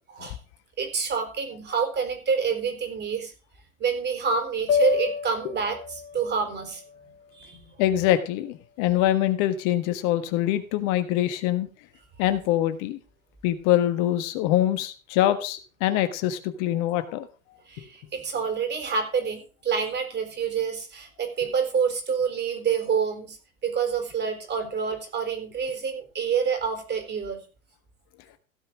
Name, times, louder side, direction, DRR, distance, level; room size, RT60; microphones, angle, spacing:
voice 1, 0.8-3.3 3.8-6.8 7.3-7.7 17.7-23.4 23.6-27.4, right 6 dB, 25° right, 7 dB, 4.2 m, -27 dB
sound 1, 4.7-9.0, left 7 dB, 75° left, 3.3 m, -31 dB
voice 2, 7.8-11.7 12.2-13.0 13.4-17.3, left 13 dB, 45° left, 11 dB, 1.5 m, -24 dB
16.5 x 5.7 x 6.3 m, 0.36 s
hypercardioid pair, 100°, 42 cm